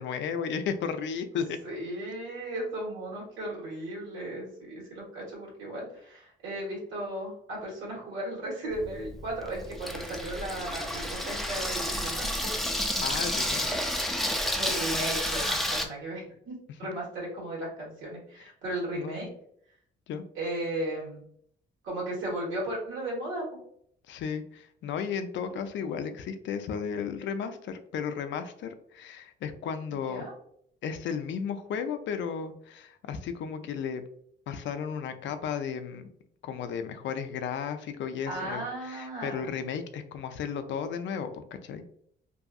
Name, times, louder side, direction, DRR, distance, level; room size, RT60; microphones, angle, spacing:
voice 1, 0.0-1.6 13.0-13.7 18.9-19.3 20.1-20.2 24.1-30.2 30.8-34.0 34.5-36.1 36.4-41.8, left 7 dB, 70° left, 9 dB, 0.4 m, -34 dB
voice 2, 1.6-12.5 14.6-19.3 20.3-21.2 21.8-23.4 25.4-25.5 26.0-26.1 29.9-30.3 38.2-39.5, right 1 dB, 80° right, -4 dB, 1.4 m, -36 dB
Water tap faucet / Sink (filling or washing), 8.7-15.9, equal, ahead, 0.4 m, -30 dB
2.7 x 2.5 x 2.3 m, 0.67 s
cardioid pair, 90°, 20 cm